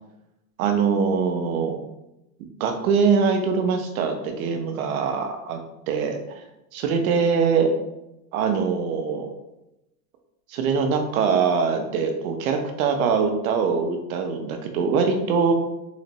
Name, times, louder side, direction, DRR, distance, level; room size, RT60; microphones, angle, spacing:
voice 1, 0.6-1.8 2.6-5.6 5.9-6.4 6.7-7.7 8.3-9.3 10.5-15.5, right 5 dB, 85° right, 5 dB, 0.8 m, -23 dB
4.1 x 3.0 x 2.8 m, 0.89 s
supercardioid pair, 150°, 41 cm